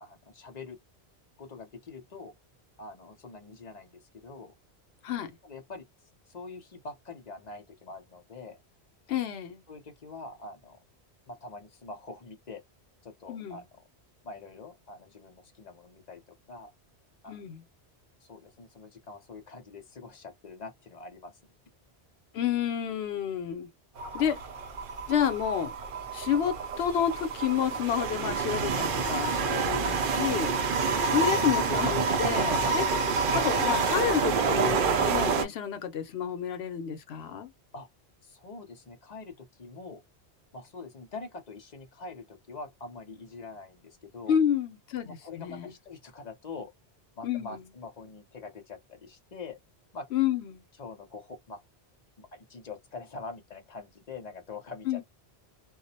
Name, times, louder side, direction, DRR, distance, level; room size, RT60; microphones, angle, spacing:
voice 1, 0.0-0.8 1.4-2.3 2.8-4.5 5.4-5.9 6.3-8.6 9.7-10.8 11.3-12.6 13.0-13.6 14.2-16.7 17.2-17.4 18.2-21.3 37.7-37.9 38.2-40.0 40.5-44.3 45.0-46.7 47.2-49.6 49.9-50.1 50.8-51.6 52.2-55.0, left 3 dB, 45° left, 0.7 m, -44 dB
voice 2, 9.1-9.6 13.3-13.6 17.3-17.6 22.3-23.7 24.1-24.4 25.1-25.7 26.1-30.5 31.1-32.9 33.3-37.5 44.3-45.7 47.2-47.6 50.1-50.6 54.9-55.0, left 9 dB, 70° left, 0.8 m, -29 dB
sound 1, 24.0-35.5, right 4 dB, 60° right, 0.7 m, -28 dB
2.3 x 2.0 x 2.7 m
omnidirectional pair, 1.1 m